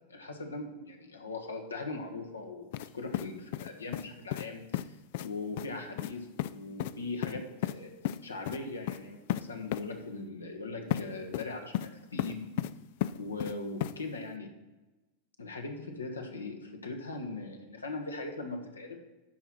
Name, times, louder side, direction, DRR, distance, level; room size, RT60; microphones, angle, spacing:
voice 1, 0.1-5.0 5.2-7.9 8.2-12.4 13.2-14.5 15.4-19.0, left 3 dB, 75° left, 3 dB, 1.3 m, -40 dB
sound 1, 2.7-2.9 3.1-4.1 4.3-4.5 4.7-4.8 5.1-5.3 5.6-5.7 6.0-6.1 6.4-6.5 6.8-6.9 7.2-7.7 8.0-8.2 8.4-8.6 8.9-9.0 9.3-9.4 9.7-9.8 10.9-11.0 11.3-11.9 12.2-12.7 13.0-13.5 13.8-13.9, left 14 dB, 50° left, 0.3 m, -33 dB
12.0 x 4.7 x 6.1 m, 1.1 s
figure-of-eight pair, 90°, 0 cm